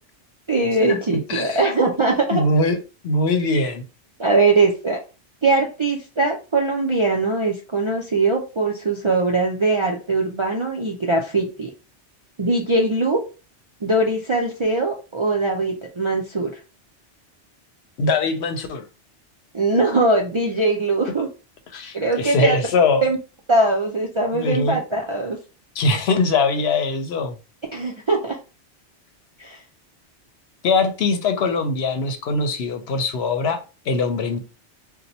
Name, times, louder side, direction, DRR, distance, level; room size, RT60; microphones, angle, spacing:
voice 1, 0.5-2.4 4.2-5.0 5.4-11.7 12.4-13.2 13.8-16.5 19.5-21.3 21.9-22.6 23.0-23.2 23.5-25.4 27.7-28.4 29.4-29.6, right 2 dB, 45° right, 0.4 m, -21 dB
voice 2, 1.3-1.6 2.3-2.8 3.0-3.8 18.0-18.8 21.7-23.0 24.3-24.8 25.8-27.4 30.6-33.6 33.9-34.4, left 3 dB, 70° left, 0.8 m, -21 dB
2.8 x 2.2 x 4.0 m
omnidirectional pair, 1.2 m